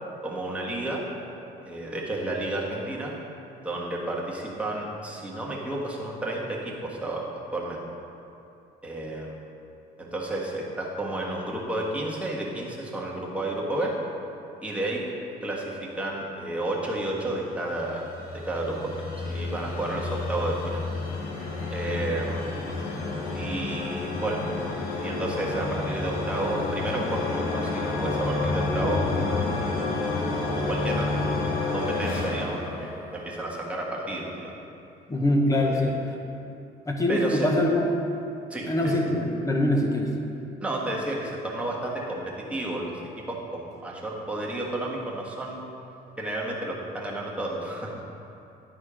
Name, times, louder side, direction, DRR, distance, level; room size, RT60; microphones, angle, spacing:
voice 1, 0.2-1.0 1.6-3.1 3.6-7.2 7.5-7.8 8.8-9.4 10.0-13.9 14.6-15.0 15.4-18.0 18.5-19.0 19.2-20.8 21.7-22.6 23.3-24.4 25.0-30.2 30.5-31.2 31.7-34.5 35.5-35.9 37.1-37.5 38.5-39.1 40.6-42.2 42.5-42.9 43.3-45.6 46.2-47.9, right 1 dB, 5° right, -4 dB, 1.4 m, -31 dB
sound 1, 17.4-33.5, left 3 dB, 60° left, 1.3 m, -30 dB
voice 2, 35.1-35.9 36.9-37.8 38.7-40.1, left 1 dB, 20° left, 1 dB, 1.0 m, -23 dB
9.9 x 4.3 x 5.0 m, 2.8 s
cardioid pair, 110°, 17 cm